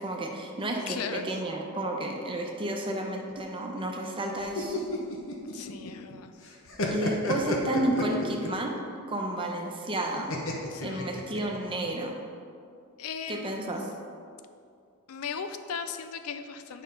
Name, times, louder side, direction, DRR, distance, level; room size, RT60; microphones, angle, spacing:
voice 1, 0.0-4.8 6.9-8.8 9.1-10.3 10.8-12.1 13.3-13.8, right 1 dB, 25° right, 1 dB, 0.8 m, -31 dB
voice 2, 0.8-1.4 5.5-6.3 10.7-11.0 13.0-13.7 15.1-16.8, left 6 dB, 80° left, 9 dB, 0.5 m, -37 dB
sound 1, 4.4-6.1 6.4-8.6 10.3-11.7, left 2 dB, 65° left, 1.0 m, -32 dB
8.8 x 5.4 x 4.0 m, 2.4 s
head